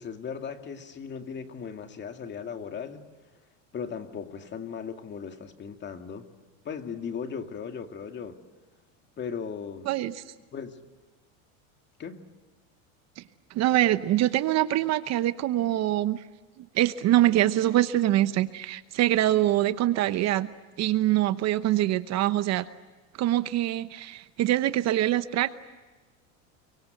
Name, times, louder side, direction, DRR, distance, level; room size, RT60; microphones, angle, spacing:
voice 1, 0.0-3.0 3.7-6.3 6.6-8.4 9.2-9.9 10.5-10.8 12.0-12.2, left 6 dB, 25° left, 6 dB, 2.3 m, -37 dB
voice 2, 9.9-10.2 13.2-13.3 13.5-16.2 16.6-20.5 20.8-22.7 23.2-25.6, right 14 dB, 40° right, 13 dB, 1.0 m, -24 dB
30.0 x 24.0 x 8.0 m, 1.3 s
supercardioid pair, 130°, 39 cm